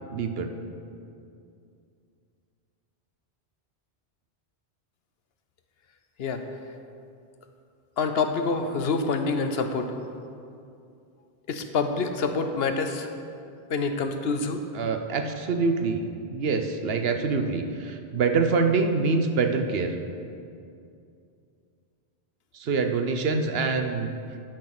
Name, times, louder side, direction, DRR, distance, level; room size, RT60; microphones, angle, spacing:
voice 1, 0.1-0.5 14.7-16.0 16.3-20.0 22.5-24.1, right 4 dB, 70° right, 6 dB, 0.9 m, -25 dB
voice 2, 8.0-9.9 11.5-13.1 13.7-14.6, left 4 dB, 70° left, 6 dB, 0.9 m, -26 dB
10.5 x 6.2 x 5.9 m, 2.5 s
omnidirectional pair, 1.1 m